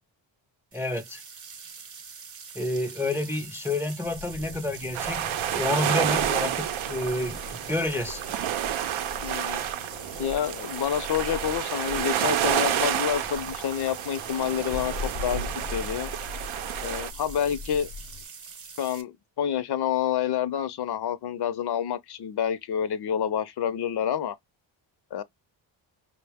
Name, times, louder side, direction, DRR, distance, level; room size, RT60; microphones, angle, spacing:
voice 1, 0.7-1.2 2.6-8.2, left 2 dB, 5° right, 0.4 m, -29 dB
sound 1, 0.7-19.0, right 6 dB, 40° right, 0.8 m, -44 dB
Wind, 4.0-18.2, left 3 dB, 85° left, 0.8 m, -41 dB
sound 2, 4.9-17.1, right 10 dB, 80° right, 0.6 m, -30 dB
voice 2, 9.2-9.6 10.2-16.1 16.8-17.9 18.8-24.4 25.1-25.2, left 9 dB, 55° left, 0.5 m, -28 dB
5.1 x 2.1 x 3.4 m
cardioid pair, 120°, 48 cm